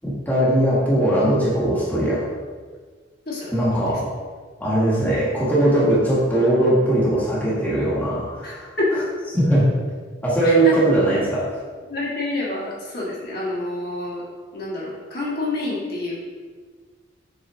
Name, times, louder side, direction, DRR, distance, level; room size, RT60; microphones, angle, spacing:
voice 1, 0.0-2.3 3.5-4.1 4.6-8.7 9.3-9.7 10.2-11.5, right 1 dB, 10° left, -8 dB, 1.4 m, -20 dB
voice 2, 3.2-3.6 8.4-8.6 10.4-10.7 11.9-14.2 14.5-16.2, left 2 dB, 55° left, -6 dB, 1.6 m, -28 dB
7.4 x 4.2 x 3.1 m, 1.5 s
head